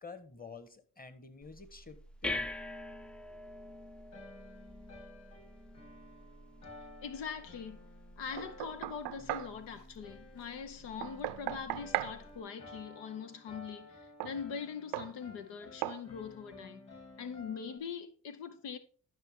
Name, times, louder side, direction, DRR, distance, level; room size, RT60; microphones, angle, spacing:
voice 1, 0.0-2.5, left 4 dB, 20° left, 1.4 m, -49 dB
sound 1, 1.4-12.4, left 2 dB, 5° left, 0.4 m, -46 dB
sound 2, 4.1-17.8, left 2 dB, 40° left, 3.2 m, -54 dB
voice 2, 7.0-7.9 8.2-16.9 17.2-18.8, left 6 dB, 80° left, 0.9 m, -42 dB
Knock, 8.4-9.5 11.0-12.2 14.2-14.4 14.9-15.1 15.8-16.0, right 15 dB, 85° right, 0.6 m, -37 dB
12.5 x 5.8 x 3.7 m
supercardioid pair, 60°, 41 cm